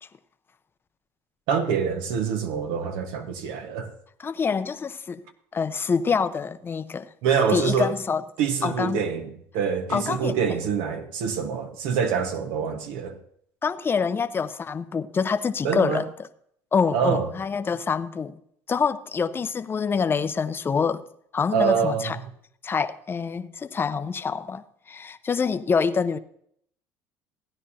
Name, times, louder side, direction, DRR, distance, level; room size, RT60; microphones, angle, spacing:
voice 1, 1.5-3.9 7.2-7.9 8.4-13.2 15.6-16.0 16.9-17.3 21.5-22.2, right 6 dB, 80° right, 1.3 m, -25 dB
voice 2, 4.2-5.2 5.5-7.1 7.5-8.2 8.6-9.0 9.9-10.4 13.6-16.1 16.7-18.4 18.7-21.0 21.3-22.2 22.6-26.2, left 5 dB, 25° left, 0.6 m, -26 dB
15.5 x 9.9 x 2.8 m
supercardioid pair, 95°, 8 cm